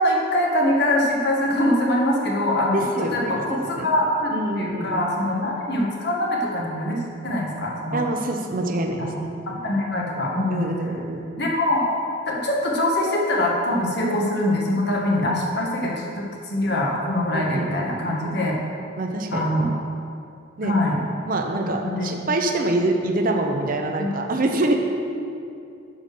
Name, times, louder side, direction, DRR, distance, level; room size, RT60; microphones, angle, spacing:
voice 1, 0.0-2.8 3.1-8.0 9.0-9.1 9.5-10.7 11.4-11.9 12.3-18.5 19.3-19.7 20.6-21.0 21.8-22.1 24.0-24.1, left 1 dB, 55° left, -2 dB, 1.5 m, -23 dB
voice 2, 2.7-3.9 4.3-5.1 7.9-9.1 10.5-11.3 17.3-17.8 19.0-19.5 20.6-20.7 21.3-24.7, right 2 dB, 45° right, 3 dB, 0.7 m, -25 dB
9.3 x 5.0 x 6.7 m, 2.6 s
head